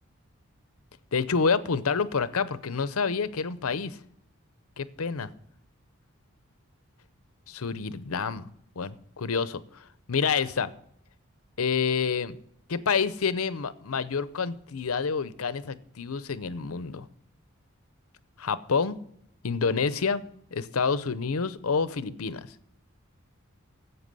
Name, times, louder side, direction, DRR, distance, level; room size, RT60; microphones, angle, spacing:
voice 1, 1.1-4.0 4.8-5.3 7.5-8.5 8.8-9.6 10.1-10.7 11.6-12.4 12.7-17.1 18.4-19.0 19.4-20.2 20.5-22.5, left 5 dB, 85° left, 15 dB, 0.7 m, -28 dB
11.5 x 8.1 x 5.4 m, 0.70 s
head